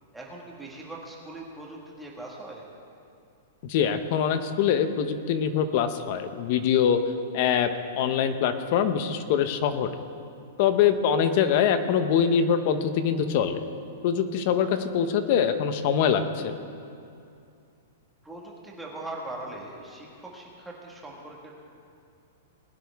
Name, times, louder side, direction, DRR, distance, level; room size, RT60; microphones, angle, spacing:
voice 1, 0.1-2.7 7.1-7.2 10.8-10.9 14.5-14.6 18.2-21.5, right 2 dB, 5° right, -3 dB, 1.6 m, -41 dB
voice 2, 3.6-7.0 7.3-7.7 8.0-9.9 10.6-13.6 14.0-16.6, left 8 dB, 40° left, 9 dB, 0.8 m, -24 dB
20.5 x 9.9 x 3.5 m, 2.5 s
supercardioid pair, 170°, 0 cm